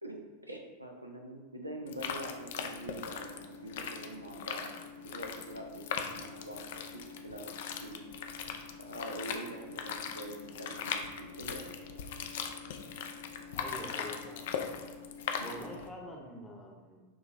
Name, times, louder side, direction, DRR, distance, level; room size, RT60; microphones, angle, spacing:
voice 1, 0.0-4.7 5.0-8.0 8.8-12.0 15.3-15.6, right 1 dB, 85° right, 2 dB, 0.5 m, -45 dB
sound 1, 1.9-15.9, left 7 dB, 55° left, 0.3 m, -40 dB
voice 2, 13.5-14.6 15.4-17.1, left 1 dB, 5° left, -2 dB, 0.8 m, -45 dB
6.1 x 2.7 x 2.5 m, 1.2 s
figure-of-eight pair, 90°, 0 cm